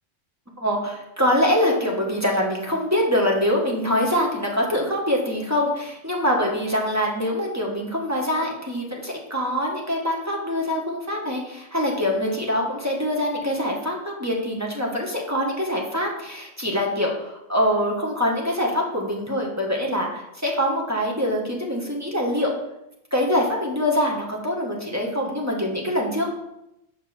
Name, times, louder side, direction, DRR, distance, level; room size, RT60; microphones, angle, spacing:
voice 1, 0.6-22.5 23.1-26.3, equal, 15° right, -1 dB, 1.2 m, -24 dB
7.7 x 5.3 x 4.3 m, 0.87 s
omnidirectional pair, 1.3 m